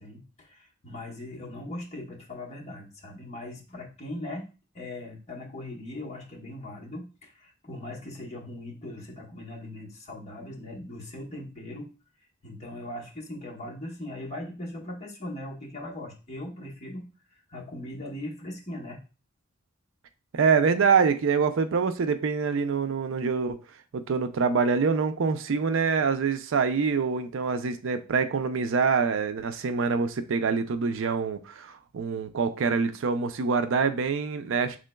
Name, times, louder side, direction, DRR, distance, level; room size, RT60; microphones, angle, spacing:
voice 1, 0.0-11.9 12.4-19.0, left 1 dB, 35° left, 1.2 m, -40 dB
voice 2, 20.3-23.6 23.9-34.8, right 5 dB, 65° right, 0.4 m, -25 dB
6.2 x 3.7 x 2.2 m
head